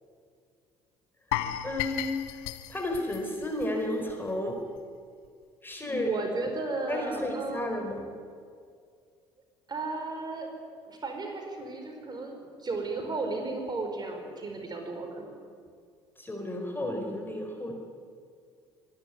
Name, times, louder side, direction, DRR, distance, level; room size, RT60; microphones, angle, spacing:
sound 1, 1.3-4.3 4.6-4.8 5.2-5.3, left 13 dB, 70° left, 1.0 m, -35 dB
voice 1, 1.6-2.2 2.7-4.6 5.6-6.1 6.9-8.1 16.2-17.7, left 1 dB, 15° left, 2 dB, 4.3 m, -32 dB
voice 2, 5.8-7.8 9.7-10.5 10.8-15.3, right 3 dB, 30° right, 3 dB, 5.0 m, -34 dB
24.0 x 11.5 x 9.8 m, 2.2 s
hypercardioid pair, 60°, 13 cm